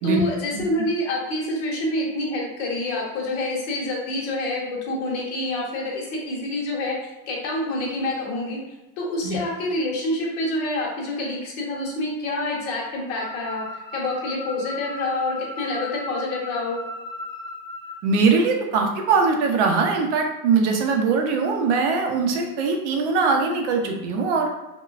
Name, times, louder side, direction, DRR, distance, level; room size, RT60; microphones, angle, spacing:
voice 1, 0.0-8.6 9.0-16.8, left 1 dB, 45° left, -2 dB, 0.8 m, -27 dB
sound 1, 13.1-18.0, left 2 dB, 5° left, 0.4 m, -36 dB
voice 2, 18.0-24.5, right 4 dB, 55° right, 3 dB, 0.5 m, -21 dB
2.9 x 2.2 x 2.4 m, 1.0 s
supercardioid pair, 170°, 43 cm